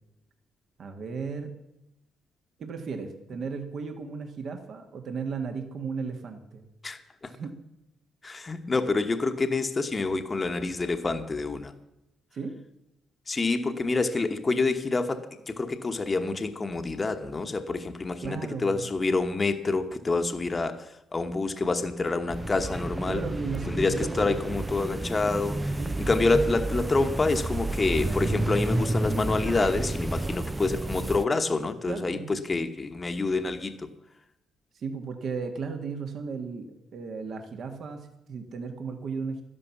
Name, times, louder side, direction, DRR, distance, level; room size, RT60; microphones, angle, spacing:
voice 1, 0.8-1.5 2.6-6.7 7.3-7.5 12.3-12.5 18.2-18.9 23.1-24.3 25.8-26.1 31.9-32.4 34.7-39.4, right 5 dB, 60° right, 5 dB, 1.6 m, -35 dB
voice 2, 6.8-7.3 8.2-11.7 13.3-23.2 23.7-25.8 26.1-33.9, left 3 dB, 30° left, 7 dB, 1.1 m, -27 dB
sound 1, 22.3-31.3, right 2 dB, 15° right, 0.4 m, -30 dB
12.0 x 11.0 x 7.1 m, 0.88 s
cardioid pair, 90°, 0 cm